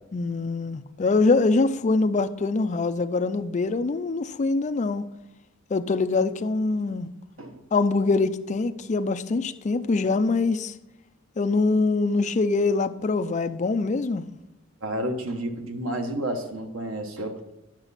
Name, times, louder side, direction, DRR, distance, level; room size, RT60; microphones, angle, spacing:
voice 1, 0.1-5.1 5.7-7.1 7.7-10.7 11.4-14.3, left 3 dB, 35° left, 0.4 m, -24 dB
voice 2, 14.8-17.5, right 1 dB, 85° right, 1.2 m, -31 dB
10.5 x 5.9 x 4.1 m
head